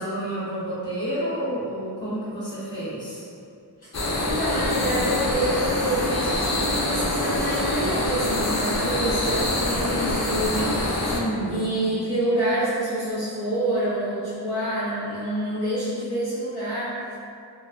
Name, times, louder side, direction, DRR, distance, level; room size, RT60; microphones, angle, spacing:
voice 1, 0.0-3.2 11.1-11.7, equal, 10° left, -14 dB, 1.4 m, -30 dB
sound 1, 3.9-11.2, left 1 dB, 40° left, 0.4 m, -25 dB
voice 2, 4.0-10.9 11.5-16.9, right 1 dB, 60° left, -12 dB, 1.1 m, -27 dB
3.0 x 2.3 x 2.5 m, 2.4 s
wide cardioid pair, 55°, 42 cm